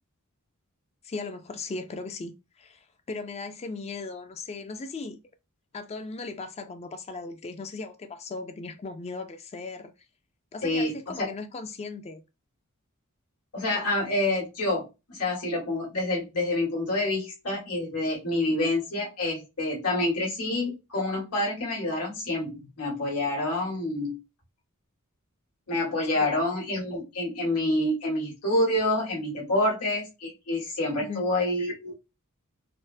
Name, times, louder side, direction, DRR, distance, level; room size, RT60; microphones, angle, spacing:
voice 1, 1.0-5.2 5.7-9.9 10.5-12.2 26.1-26.3 31.0-31.2, left 3 dB, 30° left, 0.4 m, -37 dB
voice 2, 10.6-11.3 13.5-24.2 25.7-31.9, left 1 dB, 80° left, 1.6 m, -27 dB
4.2 x 2.0 x 2.5 m
head